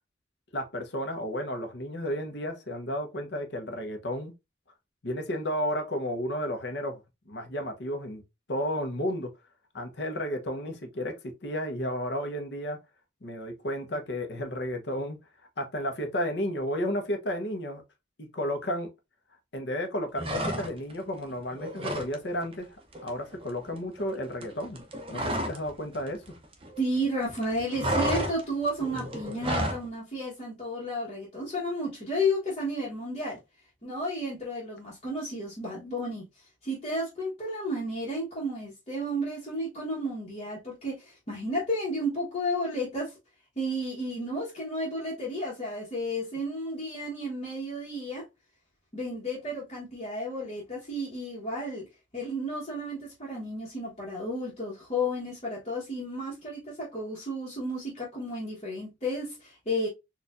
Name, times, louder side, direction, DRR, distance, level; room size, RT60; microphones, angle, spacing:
voice 1, 0.5-4.3 5.0-7.0 7.3-8.2 8.5-9.3 9.7-12.8 13.2-15.2 15.6-17.8 18.2-18.9 19.5-22.7 23.0-24.8 25.1-26.2, equal, 65° left, 0.8 m, -32 dB
sound 1, 20.2-21.0 21.3-22.1 22.4-22.6 22.9-25.7 25.9-27.0 27.3-29.9, right 1 dB, 30° right, 0.6 m, -31 dB
voice 2, 26.8-33.4 33.8-36.2 36.6-43.1 43.6-48.2 48.9-51.8 52.1-59.9, equal, 35° left, 1.1 m, -32 dB
4.2 x 2.5 x 2.4 m
head